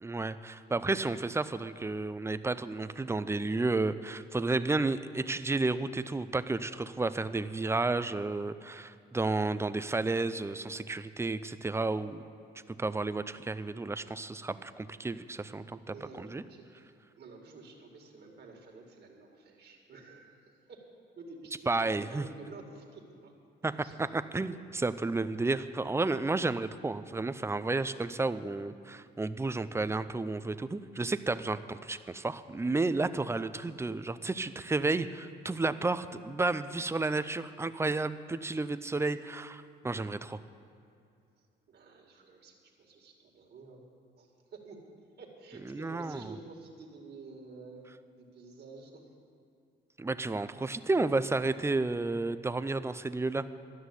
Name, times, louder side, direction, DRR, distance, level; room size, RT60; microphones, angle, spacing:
voice 1, 0.0-12.2 12.7-16.4 21.7-22.3 23.6-23.7 24.0-40.4 45.7-46.3 50.0-53.5, right 3 dB, 15° right, 12 dB, 0.5 m, -32 dB
voice 2, 15.9-16.9 17.2-20.8 21.2-23.4 23.6-24.0 41.7-43.8 44.2-44.8 45.2-47.8 48.2-49.1, right 3 dB, 55° right, 1 dB, 2.3 m, -50 dB
12.5 x 6.3 x 9.6 m, 2.5 s
cardioid pair, 90°, 20 cm